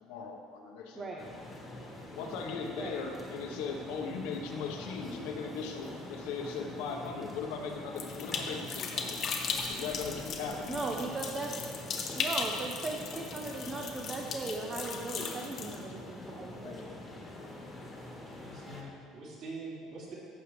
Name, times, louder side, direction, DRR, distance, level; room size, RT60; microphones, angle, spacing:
voice 1, 0.0-1.3 2.1-9.2 9.7-10.8 14.9-15.3 15.6-16.0 16.6-16.9, left 5 dB, 85° left, 2 dB, 1.2 m, -39 dB
sound 1, 1.2-18.8, left 1 dB, 10° left, 1.3 m, -45 dB
sound 2, 8.0-15.8, left 5 dB, 35° left, 0.8 m, -37 dB
voice 2, 10.7-11.5 12.1-16.7, right 3 dB, 20° right, 0 dB, 0.5 m, -38 dB
voice 3, 18.3-20.1, right 2 dB, 50° right, -6 dB, 2.6 m, -44 dB
14.5 x 6.5 x 3.3 m, 2.2 s
cardioid pair, 180°, 0 cm